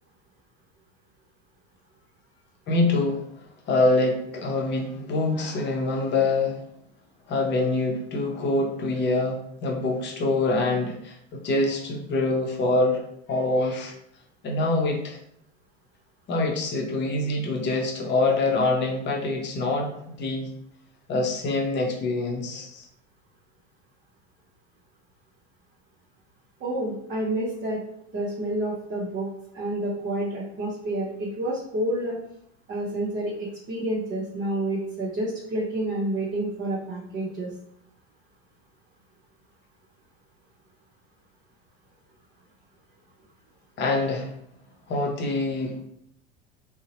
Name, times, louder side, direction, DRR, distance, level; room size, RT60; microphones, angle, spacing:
voice 1, 2.7-3.2 3.7-6.6 7.3-13.9 14.4-15.2 16.3-19.9 20.2-20.5 21.1-22.9 43.8-44.3 44.9-45.8, left 2 dB, 35° left, 2 dB, 0.7 m, -25 dB
voice 2, 26.6-27.8 28.1-32.2 32.7-37.5, right 1 dB, 30° right, -5 dB, 0.7 m, -29 dB
2.7 x 2.0 x 2.8 m, 0.72 s
hypercardioid pair, 90°, 33 cm